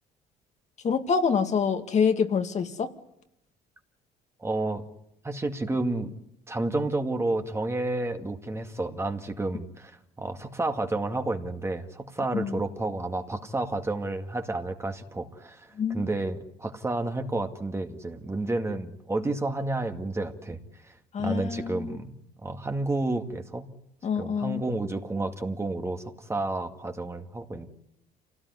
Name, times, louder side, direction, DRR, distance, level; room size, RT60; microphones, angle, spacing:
voice 1, 0.8-2.9 12.3-12.6 15.8-16.1 21.1-22.0 24.0-24.6, left 6 dB, 45° left, 6 dB, 2.2 m, -26 dB
voice 2, 4.4-4.8 5.2-6.1 6.5-20.6 21.2-22.1 22.4-23.7 24.2-27.7, right 2 dB, 15° right, 6 dB, 2.1 m, -30 dB
27.5 x 18.0 x 9.8 m, 0.81 s
cardioid pair, 110°, 17 cm